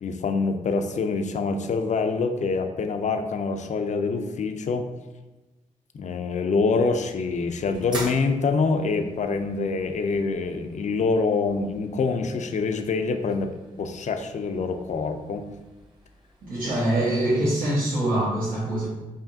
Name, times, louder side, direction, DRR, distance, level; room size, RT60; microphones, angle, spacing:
voice 1, 0.0-4.9 5.9-13.5 13.8-15.4, left 4 dB, 50° left, 7 dB, 0.4 m, -25 dB
sound 1, 6.5-17.3, right 1 dB, 30° right, 1.1 m, -45 dB
voice 2, 16.4-18.9, right 1 dB, 75° right, -11 dB, 1.3 m, -24 dB
4.9 x 2.7 x 2.6 m, 1.1 s
cardioid pair, 55°, 15 cm